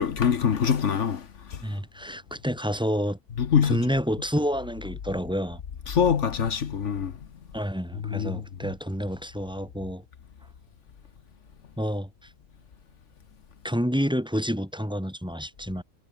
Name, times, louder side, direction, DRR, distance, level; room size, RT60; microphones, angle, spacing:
voice 1, 0.0-1.6 3.4-3.8 5.9-7.1 8.0-8.4, left 7 dB, 70° left, 1.5 m, -24 dB
voice 2, 1.6-3.2 3.6-5.6 7.5-10.0 11.8-12.1 13.6-15.8, equal, 5° right, 4.5 m, -29 dB
omnidirectional pair, 1.3 m